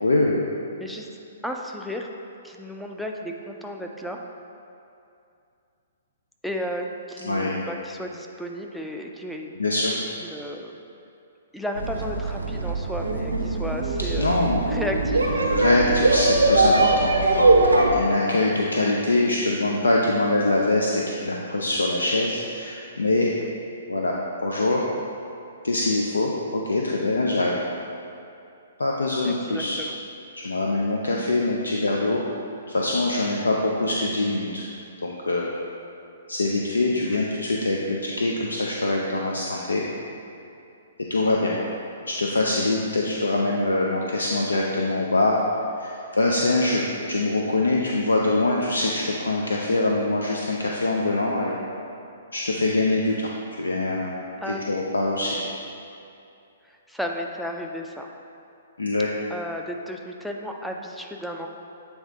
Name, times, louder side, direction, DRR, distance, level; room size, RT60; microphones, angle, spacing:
voice 1, 0.0-0.5 7.3-7.6 9.6-9.9 14.2-14.6 15.5-23.3 23.9-24.1 24.4-24.8 25.6-27.6 28.8-29.8 30.4-32.2 32.7-34.7 35.0-35.5 36.3-39.8 41.1-41.5 42.1-45.4 45.8-51.5 52.3-53.3 53.6-54.2 54.5-55.4 58.8-59.1, left 2 dB, 75° left, -2 dB, 0.5 m, -24 dB
voice 2, 1.4-2.1 2.4-4.2 6.4-9.5 10.2-10.7 11.5-14.4 14.7-15.4 23.4-23.5 29.2-30.0 37.0-37.2 54.4-54.6 56.6-58.1 59.3-61.5, equal, ahead, 1 dB, 0.4 m, -33 dB
sound 1, 11.8-17.9, right 2 dB, 80° right, 0.6 m, -21 dB
8.0 x 3.5 x 3.8 m, 2.6 s
figure-of-eight pair, 120°, 0 cm